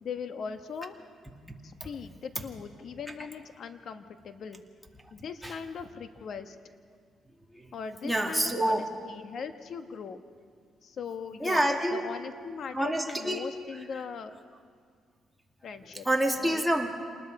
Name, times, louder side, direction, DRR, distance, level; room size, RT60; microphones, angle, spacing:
voice 1, 0.0-1.0 1.6-4.6 5.1-6.6 7.7-10.2 10.8-11.6 11.9-14.3 15.6-16.1 16.4-16.6, left 6 dB, 60° left, 8 dB, 1.2 m, -40 dB
voice 2, 8.0-8.9 11.4-12.0 12.7-13.4 16.0-16.9, right 1 dB, ahead, 1 dB, 2.4 m, -27 dB
27.5 x 20.0 x 4.8 m, 2.1 s
cardioid pair, 90°, 0 cm